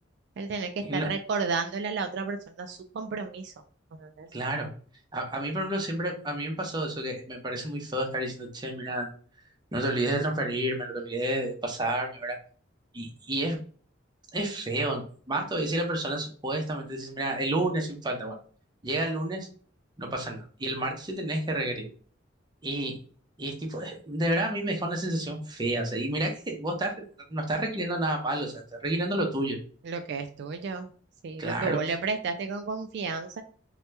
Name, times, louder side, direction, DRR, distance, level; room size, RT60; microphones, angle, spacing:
voice 1, 0.4-3.5 3.9-4.3 29.8-30.9 31.2-33.4, right 4 dB, 65° right, 7 dB, 0.3 m, -32 dB
voice 2, 4.3-4.7 5.1-9.1 9.7-12.4 12.9-13.6 14.3-18.4 18.8-19.5 20.0-21.9 22.6-22.9 23.4-26.9 27.3-29.6 31.4-31.8, right 1 dB, 25° right, 2 dB, 0.6 m, -30 dB
2.8 x 2.2 x 3.2 m, 0.43 s
head